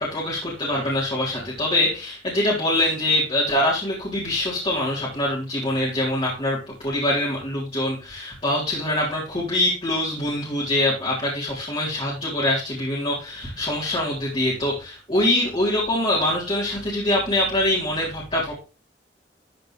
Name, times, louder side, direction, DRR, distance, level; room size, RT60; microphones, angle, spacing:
voice 1, 0.0-18.6, left 1 dB, 35° left, -6 dB, 3.6 m, -24 dB
13.5 x 5.1 x 3.4 m, 0.33 s
head